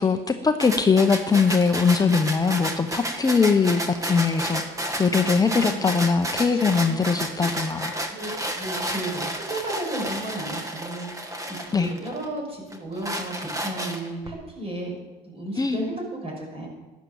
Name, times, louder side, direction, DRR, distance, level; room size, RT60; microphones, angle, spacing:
voice 1, 0.0-4.6 5.0-7.9 11.7-11.9 15.6-15.8, left 5 dB, 20° left, 7 dB, 0.8 m, -21 dB
sound 1, 0.6-12.3 12.7-14.3, right 1 dB, 20° right, 1.7 m, -31 dB
voice 2, 5.3-5.9 6.5-7.0 8.1-14.9 15.2-16.7, right 1 dB, 35° right, 0 dB, 5.9 m, -34 dB
13.0 x 10.5 x 7.0 m, 1.2 s
cardioid pair, 110°, 17 cm